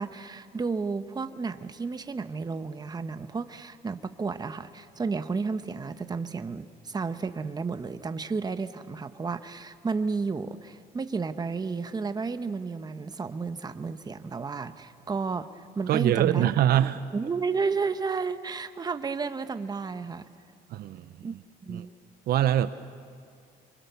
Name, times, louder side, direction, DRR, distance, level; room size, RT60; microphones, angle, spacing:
voice 1, 0.0-16.5 17.1-20.2 21.2-21.3 21.6-21.9, right 4 dB, 25° right, 10 dB, 1.0 m, -32 dB
voice 2, 15.9-17.0 20.7-21.4 21.7-21.8 22.3-22.7, right 12 dB, 65° right, 13 dB, 0.7 m, -24 dB
27.0 x 24.0 x 7.0 m, 2.2 s
cardioid pair, 110°, 17 cm